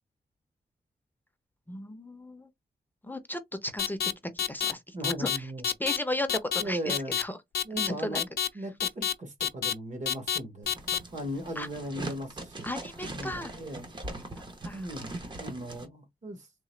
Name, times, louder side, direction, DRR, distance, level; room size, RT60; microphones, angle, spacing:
voice 1, 1.7-2.5 3.0-4.0 4.3-5.5 5.8-7.4 7.7-8.2 11.6-11.7 12.6-13.5 14.6-14.9, left 1 dB, 10° left, 0.6 m, -35 dB
sound 1, 3.8-4.1 4.4-4.7 5.0-5.4 5.6-6.0 6.3-6.6 6.9-7.2 7.5-7.9 8.1-8.5 8.8-9.1 9.4-9.7 10.1-10.4 10.7-11.0, left 9 dB, 75° left, 0.5 m, -28 dB
voice 2, 4.9-5.7 6.6-7.2 7.6-8.3 8.5-10.7 11.1-12.7 13.0-13.9 14.7-16.5, right 1 dB, 45° right, 1.2 m, -37 dB
sound 2, 10.6-15.9, right 2 dB, 30° right, 0.8 m, -41 dB
3.7 x 3.0 x 3.2 m
wide cardioid pair, 165°, 17 cm